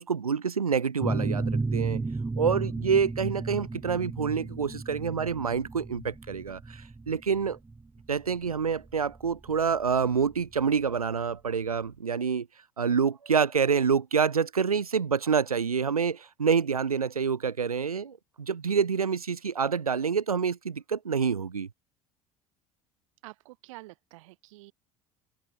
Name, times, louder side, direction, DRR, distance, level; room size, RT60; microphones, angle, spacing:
voice 1, 0.0-2.0 2.4-7.6 8.1-12.5 12.8-21.7, right 6 dB, 85° right, 0.4 m, -27 dB
sound 1, 1.0-10.4, right 3 dB, 10° right, 0.6 m, -33 dB
voice 2, 23.2-24.7, right 20 dB, 65° right, 2.9 m, -48 dB
figure-of-eight pair, 65°, 18 cm